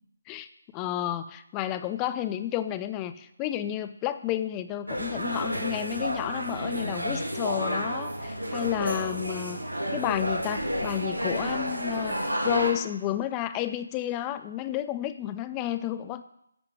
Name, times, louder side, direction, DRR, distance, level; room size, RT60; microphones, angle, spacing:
voice 1, 0.7-9.6 9.9-12.2 12.4-16.2, left 12 dB, 15° left, 13 dB, 0.4 m, -31 dB
sound 1, 4.9-12.7, equal, 85° right, 1.8 m, -30 dB
10.5 x 4.9 x 7.2 m, 0.78 s
figure-of-eight pair, 150°, 0 cm